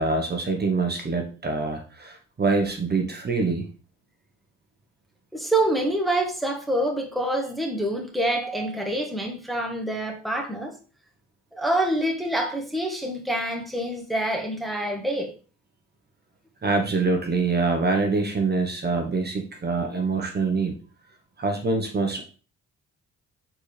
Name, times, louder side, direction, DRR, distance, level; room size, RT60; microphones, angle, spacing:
voice 1, 0.0-3.7 16.6-20.8 21.4-22.2, right 3 dB, 35° right, 1.3 m, -25 dB
voice 2, 5.3-10.7 11.5-15.3, right 1 dB, ahead, 1.5 m, -26 dB
7.4 x 4.4 x 3.4 m
cardioid pair, 90°, 30 cm